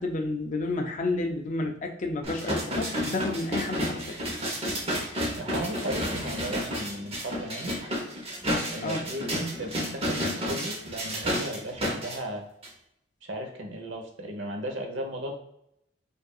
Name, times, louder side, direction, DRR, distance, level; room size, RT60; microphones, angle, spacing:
voice 1, 0.0-4.2 8.8-9.0, left 2 dB, 40° left, 2 dB, 0.4 m, -31 dB
sound 1, 2.2-12.2 12.6-12.7, equal, 30° right, 0.9 m, -31 dB
voice 2, 5.4-7.8 8.7-12.4 13.2-15.4, right 1 dB, 70° right, 2 dB, 0.9 m, -36 dB
5.2 x 2.6 x 2.3 m, 0.77 s
head